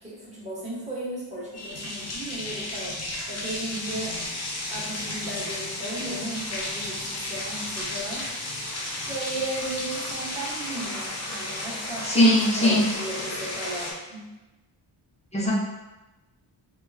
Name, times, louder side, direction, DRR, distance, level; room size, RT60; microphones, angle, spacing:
voice 1, 0.0-2.9 3.3-4.2 4.7-8.2 9.0-14.3, right 1 dB, 15° right, -7 dB, 1.4 m, -35 dB
sound 1, 1.5-13.9, left 1 dB, 30° left, 0.8 m, -33 dB
voice 2, 12.0-12.8 15.3-15.5, left 1 dB, 15° left, -7 dB, 1.1 m, -19 dB
3.0 x 2.9 x 2.4 m, 1.1 s
cardioid pair, 65°, 48 cm